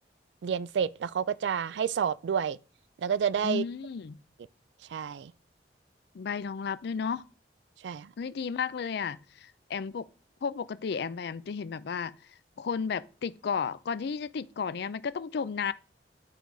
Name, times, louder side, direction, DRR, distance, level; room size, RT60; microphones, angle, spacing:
voice 1, 0.4-2.6 3.0-3.6 4.9-5.3 7.8-8.1, right 7 dB, 75° right, 0.3 m, -29 dB
voice 2, 3.4-4.2 6.1-7.2 8.2-10.1 10.4-12.2 12.6-15.7, left 6 dB, 65° left, 0.4 m, -33 dB
10.5 x 4.7 x 3.9 m
head